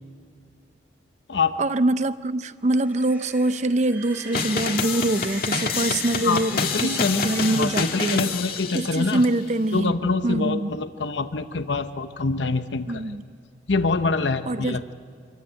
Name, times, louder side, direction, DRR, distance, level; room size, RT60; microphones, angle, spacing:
voice 1, 1.6-8.3 8.7-9.9 10.2-10.8 12.9-13.2 14.5-14.8, right 2 dB, 40° right, 0.6 m, -24 dB
sound 1, 2.6-8.7, right 1 dB, 10° right, 2.4 m, -40 dB
sound 2, 4.3-9.3, left 5 dB, 55° left, 1.7 m, -27 dB
voice 2, 6.2-9.2 9.7-13.1 13.7-14.9, left 4 dB, 85° left, 0.9 m, -25 dB
25.5 x 14.5 x 9.9 m
head